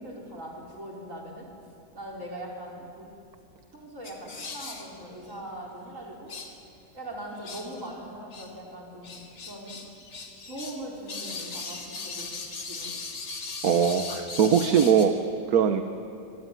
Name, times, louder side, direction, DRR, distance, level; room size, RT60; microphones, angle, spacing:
voice 1, 0.0-1.5 1.9-3.1 3.7-6.3 6.9-9.9 10.5-12.3 12.7-12.9, right 1 dB, 45° right, -1 dB, 5.3 m, -41 dB
sound 1, 4.0-4.9 5.3-5.4 6.3-6.5 7.4-7.9 8.3-8.5 9.0-10.8 11.1-15.1, left 4 dB, 70° left, 2.9 m, -38 dB
voice 2, 13.6-15.1 15.5-15.8, right 7 dB, 60° right, 7 dB, 1.4 m, -21 dB
25.5 x 21.5 x 9.1 m, 2.6 s
omnidirectional pair, 1.9 m